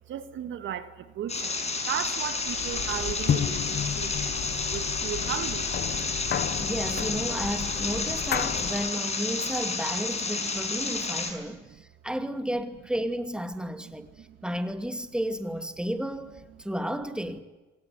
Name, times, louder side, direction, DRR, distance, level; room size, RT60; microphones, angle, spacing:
voice 1, 0.1-1.6 1.9-4.1 4.7-5.7 11.3-11.4 13.5-14.5, right 10 dB, 75° right, 2.0 m, -36 dB
sound 1, 1.3-11.3, left 4 dB, 35° left, 6.3 m, -31 dB
sound 2, 2.4-8.9, left 9 dB, 55° left, 1.1 m, -32 dB
voice 2, 6.6-17.4, equal, 5° right, 2.4 m, -32 dB
25.5 x 19.0 x 9.8 m
cardioid pair, 90°, 20 cm